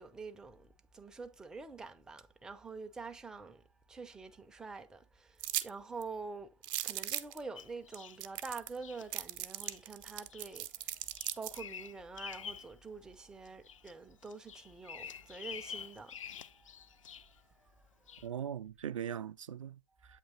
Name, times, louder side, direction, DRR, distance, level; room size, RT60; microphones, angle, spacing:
voice 1, 0.0-6.6 6.8-17.9 20.1-20.2, right 4 dB, 5° right, 0.4 m, -47 dB
sound 1, 5.4-5.7 6.0-6.1 6.6-7.4 7.9-8.0 8.2-8.8 9.1-11.6, right 13 dB, 40° right, 0.7 m, -38 dB
Bird vocalization bird call bird song, 7.6-8.2 8.8-9.1 9.6-9.8 10.3-10.6 10.9-12.7 13.1-13.9 14.2-17.4 18.1-18.3, left 7 dB, 70° left, 0.5 m, -47 dB
voice 2, 18.2-20.2, right 9 dB, 75° right, 0.4 m, -40 dB
8.1 x 2.9 x 4.0 m
figure-of-eight pair, 115°, 17 cm